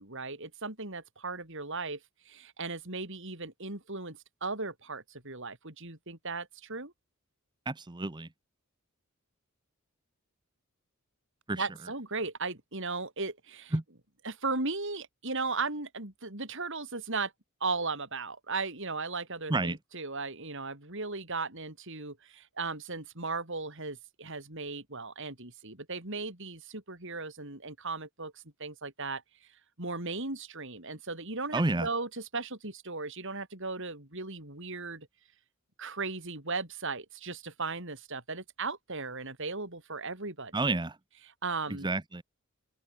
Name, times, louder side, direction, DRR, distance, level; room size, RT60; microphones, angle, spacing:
voice 1, 0.0-2.0 2.2-6.9 11.5-13.8 14.2-17.3 17.6-29.2 29.8-35.1 35.8-40.6 41.2-41.9, right 3 dB, 60° right, 5.2 m, -37 dB
voice 2, 7.7-8.3 11.5-11.7 13.7-13.8 19.5-19.8 31.5-31.9 40.5-41.0 41.8-42.2, right 2 dB, 20° right, 0.8 m, -29 dB
open air
head